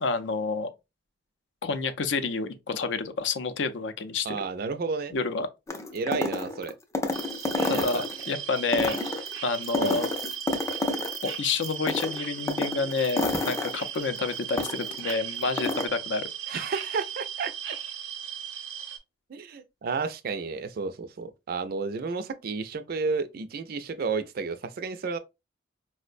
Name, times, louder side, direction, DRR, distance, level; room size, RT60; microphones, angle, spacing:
voice 1, 0.0-0.7 1.6-4.4 5.1-5.5 7.7-9.0 9.4-10.1 11.2-16.2 16.5-16.6, left 4 dB, 70° left, 0.5 m, -29 dB
voice 2, 4.3-5.2 5.9-6.7 7.7-8.0 9.8-10.0 16.5-17.7 19.3-25.2, right 4 dB, 50° right, 0.4 m, -32 dB
sound 1, 5.7-8.3 8.6-11.3 11.6-15.1 15.4-15.9, left 2 dB, 15° left, 0.4 m, -29 dB
sound 2, 7.1-19.0, right 8 dB, 85° right, 0.6 m, -37 dB
4.4 x 2.1 x 2.4 m
head